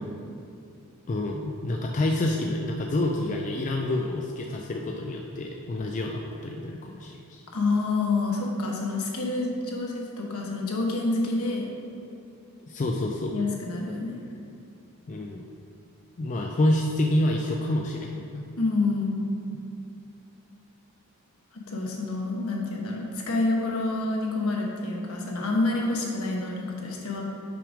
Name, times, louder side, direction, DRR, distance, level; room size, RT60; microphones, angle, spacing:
voice 1, 1.1-7.4 12.7-13.3 15.1-15.4 16.2-18.5, left 1 dB, 35° left, 1 dB, 0.3 m, -28 dB
voice 2, 7.5-11.7 13.3-14.1 18.6-19.3 21.5-27.2, left 2 dB, 70° left, -1 dB, 1.1 m, -28 dB
5.9 x 5.1 x 4.9 m, 2.6 s
head